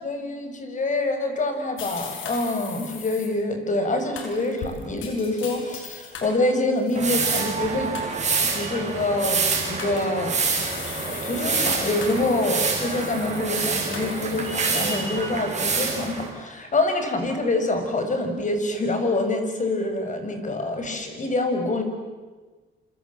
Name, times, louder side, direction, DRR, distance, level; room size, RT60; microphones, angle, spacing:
voice 1, 0.0-7.9 8.5-9.4 9.7-10.3 11.0-21.8, left 2 dB, 40° left, 6 dB, 6.4 m, -26 dB
sound 1, 1.8-3.3 4.2-6.3 6.8-7.3 7.9-8.4 9.3-10.0 10.4-14.7, left 6 dB, 85° left, 6.5 m, -39 dB
sound 2, 7.0-16.3, right 4 dB, 35° right, 6.4 m, -26 dB
28.5 x 26.5 x 7.5 m, 1.4 s
cardioid pair, 90°, 20 cm